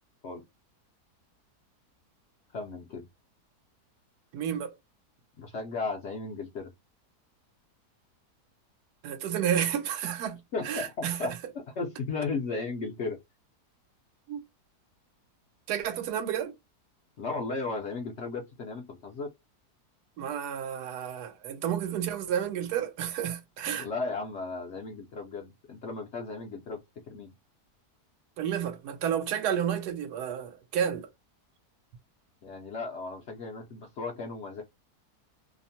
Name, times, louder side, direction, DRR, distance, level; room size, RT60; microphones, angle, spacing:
voice 1, 2.5-3.1 5.4-6.7 10.5-11.3 11.8-13.2 17.2-19.3 23.8-26.8 27.1-27.3 32.4-34.6, left 3 dB, 65° left, 0.7 m, -35 dB
voice 2, 4.3-4.7 9.0-10.4 10.6-11.3 14.3-14.4 15.7-16.5 20.2-23.9 28.4-31.1, right 9 dB, 80° right, 1.1 m, -31 dB
2.9 x 2.0 x 2.7 m
omnidirectional pair, 1.7 m